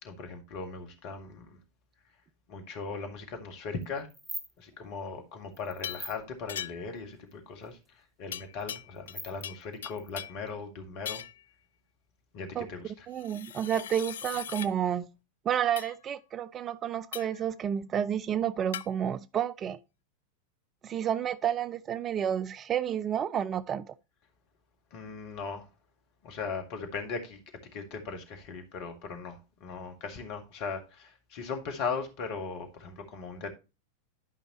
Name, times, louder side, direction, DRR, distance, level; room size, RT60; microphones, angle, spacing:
voice 1, 0.0-1.6 2.5-4.1 4.6-11.2 12.3-13.1 24.9-25.7 26.2-27.4 27.7-33.5, left 5 dB, 45° left, 1.9 m, -38 dB
sound 1, 3.8-4.5 5.6-6.2 7.3-7.4 7.6-7.7 8.5-8.6 9.0-10.5, right 1 dB, 5° right, 1.2 m, -41 dB
sound 2, 5.8-6.1 6.5-7.0 8.3-9.2 9.4-10.4 11.0-11.4 13.1-14.7 15.8-15.9 17.1-17.4 18.7-18.9, left 10 dB, 60° left, 0.3 m, -40 dB
voice 2, 13.1-15.1 15.5-19.8 20.8-23.9, right 9 dB, 25° right, 0.4 m, -30 dB
12.0 x 5.3 x 3.0 m
figure-of-eight pair, 90°, 0 cm